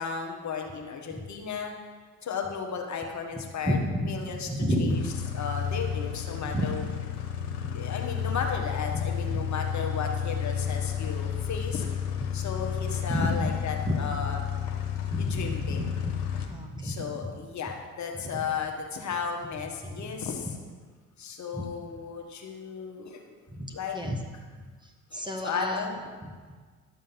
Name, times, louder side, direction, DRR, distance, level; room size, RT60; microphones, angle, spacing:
voice 1, 0.0-1.7 2.2-3.8 4.1-4.5 4.8-5.0 5.3-6.8 7.7-11.9 12.3-14.4 15.2-15.8 16.8-20.5 21.2-23.2 23.7-24.0 25.1-26.0, left 6 dB, 40° left, 2 dB, 1.5 m, -34 dB
voice 2, 3.6-4.1 4.5-5.1 6.4-6.7 8.9-9.0 9.3-9.4 12.2-12.3 13.1-13.5 13.9-14.3 15.1-17.1 18.1-18.4 19.6-19.7 19.9-20.1 21.5-21.6 23.5-24.2 24.5-26.3, equal, 10° right, 1 dB, 1.5 m, -31 dB
sound 1, 4.9-16.5, left 8 dB, 70° left, 1.4 m, -31 dB
11.5 x 7.3 x 5.6 m, 1.5 s
figure-of-eight pair, 55°, 43 cm